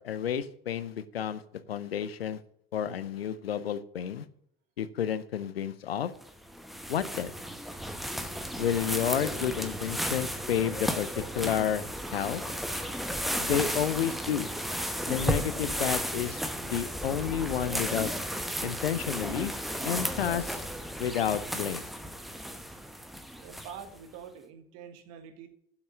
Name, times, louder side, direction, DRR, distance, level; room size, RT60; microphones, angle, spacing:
voice 1, 0.0-1.4 1.7-2.4 2.7-4.3 4.8-6.1 6.9-7.3 8.6-12.4 13.4-14.5 15.1-18.1 18.6-19.5 19.8-20.7 21.0-21.8, left 9 dB, 85° left, 15 dB, 0.6 m, -31 dB
sound 1, 6.2-24.0, equal, ahead, 1.0 m, -34 dB
voice 2, 23.4-25.5, right 8 dB, 60° right, 8 dB, 1.5 m, -45 dB
7.9 x 5.9 x 7.4 m, 0.69 s
figure-of-eight pair, 60°, 30 cm